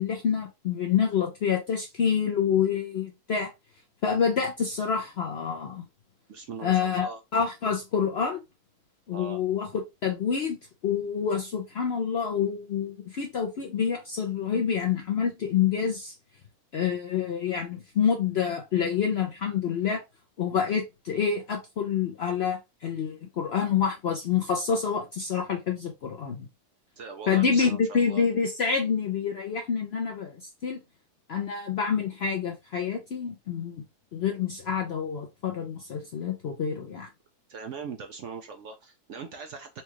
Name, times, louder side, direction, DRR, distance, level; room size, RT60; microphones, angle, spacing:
voice 1, 0.0-3.5 4.0-5.8 6.6-8.4 9.1-9.7 10.0-10.6 10.8-16.1 16.7-20.0 20.4-26.5 27.3-30.8 31.3-33.8 34.1-37.1, left 7 dB, 60° left, 0.6 m, -27 dB
voice 2, 6.3-7.2 9.1-9.4 27.0-28.3 37.5-39.8, right 5 dB, 65° right, 0.8 m, -40 dB
4.3 x 2.3 x 3.0 m
omnidirectional pair, 1.7 m